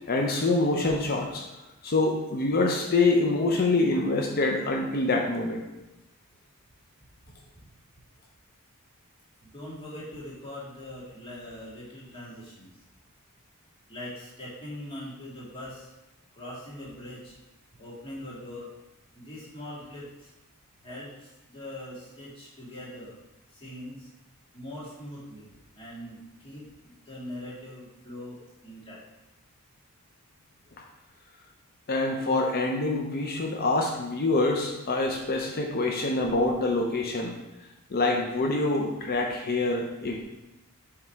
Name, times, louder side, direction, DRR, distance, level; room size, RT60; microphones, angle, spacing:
voice 1, 0.1-1.4 1.8-5.6 31.9-37.3 37.9-40.2, left 2 dB, 45° left, 1 dB, 0.6 m, -25 dB
voice 2, 9.4-12.7 13.9-15.9 16.3-17.4 17.8-18.7 19.1-20.3 20.8-23.2 23.5-24.1 24.5-29.0, left 1 dB, 25° left, -7 dB, 2.0 m, -42 dB
7.4 x 3.3 x 4.5 m, 0.98 s
head